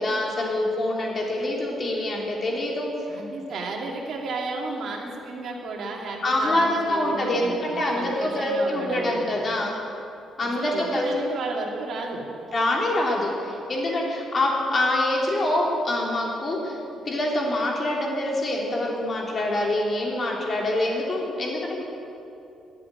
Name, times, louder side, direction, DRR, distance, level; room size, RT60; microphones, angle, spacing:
voice 1, 0.0-2.9 6.2-9.7 10.4-11.1 12.5-16.8 17.0-21.8, left 1 dB, 40° left, -2 dB, 3.3 m, -25 dB
voice 2, 3.1-9.3 10.4-12.2, right 3 dB, 65° right, 0 dB, 2.4 m, -33 dB
11.5 x 7.6 x 9.7 m, 2.8 s
cardioid pair, 90°, 0 cm